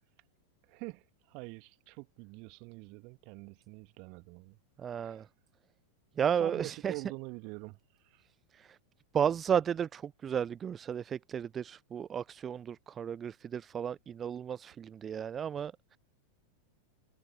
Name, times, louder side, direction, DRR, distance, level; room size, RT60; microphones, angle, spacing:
voice 1, 0.7-1.0 1.3-4.6 4.9-5.2 6.4-7.8, right 30 dB, 45° right, 2.3 m, -45 dB
voice 2, 4.8-5.3 6.2-7.0 8.5-8.8 9.1-16.0, right 8 dB, 25° right, 0.4 m, -33 dB
figure-of-eight pair, 90°, 0 cm